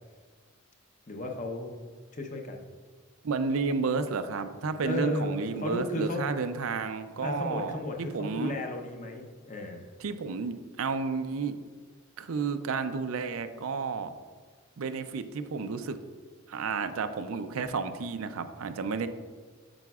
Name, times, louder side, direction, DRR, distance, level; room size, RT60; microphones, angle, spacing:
voice 1, 1.1-1.7 2.1-2.6 4.9-6.2 7.2-9.9, left 1 dB, 35° left, 3 dB, 0.7 m, -34 dB
voice 2, 3.2-8.6 10.0-11.6 12.2-14.2 14.8-16.0 16.5-19.1, right 4 dB, 75° right, 9 dB, 0.5 m, -31 dB
8.9 x 6.9 x 2.4 m, 1.5 s
head